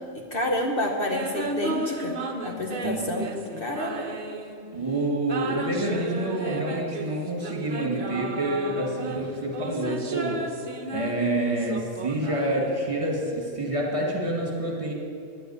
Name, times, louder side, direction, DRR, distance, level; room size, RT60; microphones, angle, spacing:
voice 1, 0.1-2.2 2.4-4.1, left 1 dB, 45° left, 1 dB, 1.2 m, -29 dB
sound 1, 1.1-4.8 5.2-13.1, right 2 dB, 40° right, 1.1 m, -34 dB
voice 2, 2.8-3.3 4.7-10.4 10.9-14.9, right 1 dB, 25° right, -1 dB, 2.0 m, -28 dB
10.0 x 8.6 x 9.6 m, 2.5 s
omnidirectional pair, 1.3 m